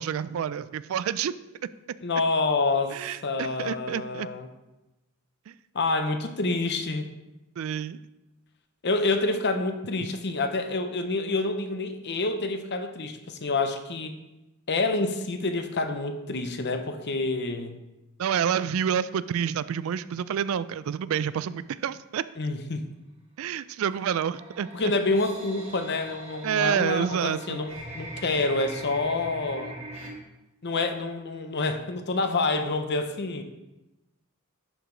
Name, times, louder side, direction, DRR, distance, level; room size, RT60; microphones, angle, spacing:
voice 1, 0.0-1.3 2.9-4.3 5.5-5.6 7.6-8.0 18.2-22.2 23.4-24.7 26.4-27.6, right 8 dB, 65° right, 16 dB, 0.3 m, -28 dB
voice 2, 2.0-2.9 3.2-4.5 5.7-7.1 8.8-14.1 14.7-17.8 22.4-22.9 24.7-29.8 30.6-33.4, left 3 dB, 50° left, 7 dB, 0.7 m, -27 dB
sound 1, 23.9-30.1, right 1 dB, 30° right, 1.5 m, -42 dB
11.0 x 4.8 x 3.9 m, 1.0 s
head